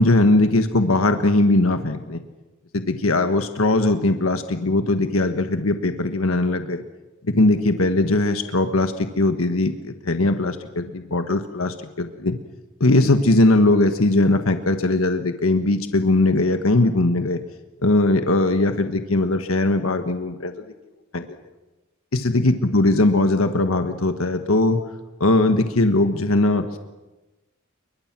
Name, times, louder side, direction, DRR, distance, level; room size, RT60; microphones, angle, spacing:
voice 1, 0.0-2.2 2.7-6.8 7.3-12.4 12.8-17.4 17.8-20.5 21.1-21.4 22.1-24.8 25.2-26.8, left 2 dB, 90° left, 7 dB, 1.5 m, -20 dB
28.0 x 23.5 x 6.1 m, 1.1 s
head